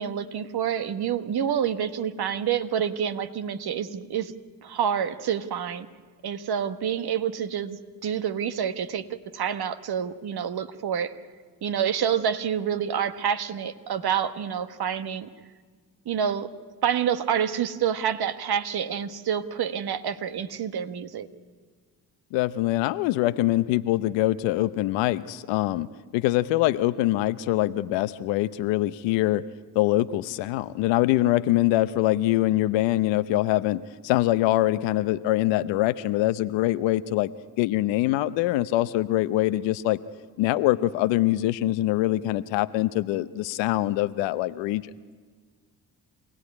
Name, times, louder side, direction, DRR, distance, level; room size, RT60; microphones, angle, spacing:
voice 1, 0.0-4.3 4.6-5.9 6.2-11.1 11.6-15.3 16.0-16.5 16.8-21.3, right 8 dB, 60° right, 10 dB, 1.4 m, -28 dB
voice 2, 22.3-29.4 29.7-37.3 37.6-40.0 40.4-44.8, left 16 dB, 85° left, 14 dB, 0.8 m, -24 dB
27.0 x 17.5 x 9.7 m, 1.5 s
hypercardioid pair, 45°, 43 cm